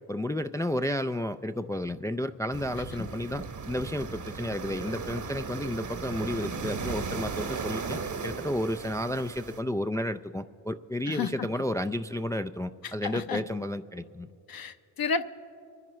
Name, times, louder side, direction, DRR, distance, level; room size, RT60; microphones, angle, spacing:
voice 1, 0.1-14.3, left 1 dB, 10° left, 9 dB, 0.3 m, -32 dB
sound 1, 2.5-9.6, right 5 dB, 40° right, 1.1 m, -36 dB
voice 2, 12.8-13.4 14.5-15.2, left 5 dB, 45° left, 10 dB, 0.9 m, -31 dB
25.0 x 11.0 x 3.1 m, 2.5 s
hypercardioid pair, 45°, 48 cm